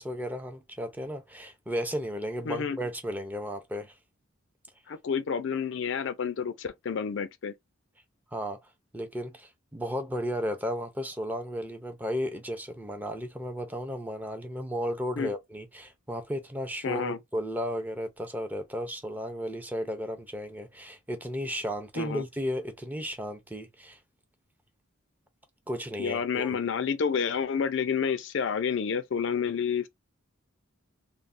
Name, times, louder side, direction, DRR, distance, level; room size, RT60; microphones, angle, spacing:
voice 1, 0.0-4.0 8.3-8.6 8.9-24.0 25.7-26.6, equal, 10° right, 0.5 m, -34 dB
voice 2, 2.5-2.8 4.9-7.5 15.2-15.3 16.8-17.2 22.0-22.2 26.0-29.9, left 6 dB, 60° left, 0.4 m, -29 dB
3.2 x 2.1 x 2.5 m
head